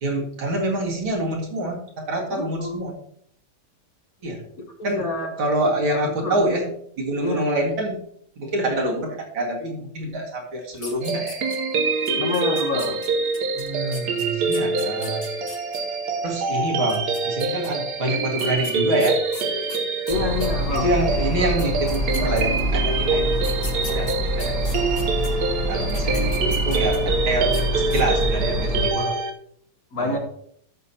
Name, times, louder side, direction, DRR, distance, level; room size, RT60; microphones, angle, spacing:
voice 1, 0.0-3.0 4.2-4.4 4.8-5.1 5.4-6.7 7.0-8.0 8.4-11.4 13.6-15.3 16.2-19.2 20.7-23.5 23.8-24.8 25.7-29.2 30.0-30.2, right 1 dB, 75° right, -1 dB, 2.9 m, -26 dB
voice 2, 2.3-2.8 4.8-5.3 5.8-6.0 6.2-6.6 7.2-7.5 12.2-13.0 20.1-20.9 29.9-30.2, left 3 dB, 50° left, 2 dB, 1.6 m, -27 dB
sound 1, 10.7-11.8 12.0-15.8 16.8-17.7 18.4-20.8 21.3-21.4 21.6-22.8 23.4-25.3 25.8-27.1 27.4-27.6 27.9-28.3, left 3 dB, 25° left, 0.9 m, -39 dB
sound 2, 11.0-29.3, right 3 dB, 55° right, 1.3 m, -26 dB
sound 3, 20.1-28.9, equal, ahead, 1.5 m, -25 dB
13.5 x 6.5 x 2.9 m, 0.65 s
omnidirectional pair, 2.2 m